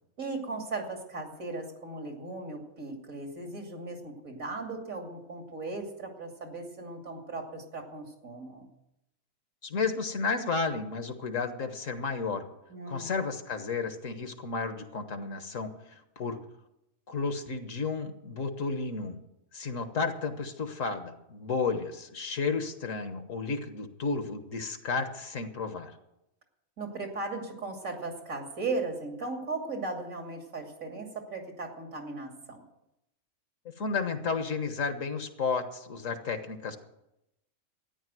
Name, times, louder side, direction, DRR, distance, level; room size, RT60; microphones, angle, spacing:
voice 1, 0.2-8.7 12.7-13.1 26.8-32.6, right 3 dB, 85° right, 2 dB, 3.1 m, -37 dB
voice 2, 9.6-12.5 12.9-16.4 17.1-19.2 19.5-25.9 33.8-36.8, left 4 dB, 70° left, 8 dB, 1.7 m, -32 dB
13.5 x 10.0 x 7.7 m, 0.86 s
omnidirectional pair, 1.4 m